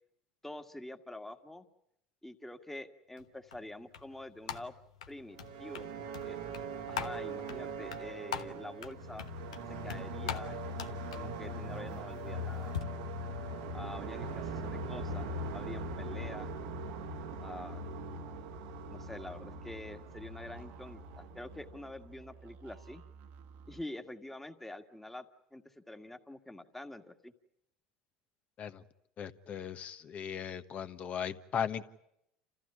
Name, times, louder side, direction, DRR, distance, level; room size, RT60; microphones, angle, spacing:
voice 1, 0.4-1.7 2.2-4.7 5.1-6.4 6.9-9.2 9.7-10.7 11.1-12.7 13.7-16.5 17.4-17.8 18.9-23.0 23.7-25.3 25.5-27.3, left 1 dB, 5° left, 6 dB, 1.8 m, -46 dB
sound 1, 3.2-12.8, left 8 dB, 90° left, 1.2 m, -45 dB
sound 2, 5.3-22.2, right 2 dB, 80° right, 1.6 m, -41 dB
sound 3, 13.4-23.8, right 6 dB, 65° right, 1.4 m, -54 dB
voice 2, 29.2-31.9, left 8 dB, 45° left, 10 dB, 1.3 m, -37 dB
28.5 x 14.5 x 9.9 m, 0.80 s
hypercardioid pair, 85°, 3 cm